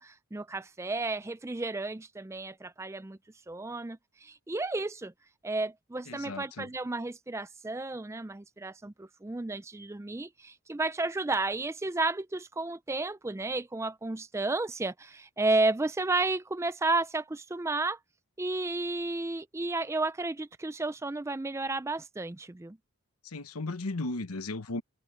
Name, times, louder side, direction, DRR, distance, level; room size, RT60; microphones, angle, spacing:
voice 1, 0.0-3.2 3.5-5.1 5.4-18.0 18.4-22.8, right 2 dB, 10° right, 0.3 m, -32 dB
voice 2, 6.1-6.7 23.2-24.8, left 2 dB, 85° left, 1.1 m, -35 dB
head